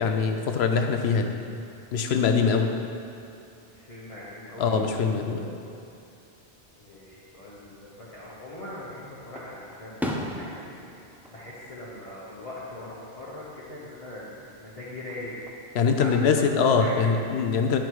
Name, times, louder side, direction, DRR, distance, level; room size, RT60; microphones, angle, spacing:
voice 1, 0.0-1.3 1.9-2.7 4.6-5.5 15.7-17.8, left 5 dB, 70° left, 5 dB, 0.9 m, -23 dB
voice 2, 3.6-4.9 5.3-5.7 6.7-15.4 16.0-17.4, left 1 dB, 35° left, -8 dB, 1.0 m, -41 dB
Fireworks, 8.2-8.9 9.4-12.5 12.8-13.4 14.9-15.7, equal, ahead, 0.4 m, -37 dB
10.5 x 4.9 x 4.6 m, 2.6 s
omnidirectional pair, 1.1 m